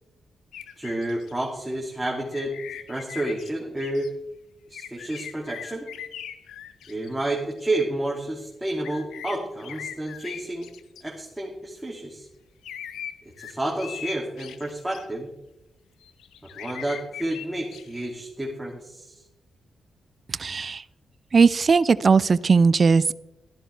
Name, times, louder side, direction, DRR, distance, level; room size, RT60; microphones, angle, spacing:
sound 1, 0.5-1.3 2.3-3.5 3.8-4.1 4.7-7.6 8.8-11.0 12.6-15.0 16.0-18.0, left 9 dB, 85° left, 0.7 m, -40 dB
voice 1, 0.8-2.5 2.9-4.1 4.7-5.9 6.9-10.7 11.0-12.3 13.4-15.3 16.5-19.2, right 1 dB, 10° right, -3 dB, 2.6 m, -30 dB
voice 2, 20.3-20.8 21.3-23.1, right 5 dB, 50° right, 18 dB, 0.4 m, -18 dB
13.0 x 11.0 x 3.4 m, 0.92 s
supercardioid pair, 50°, 0 cm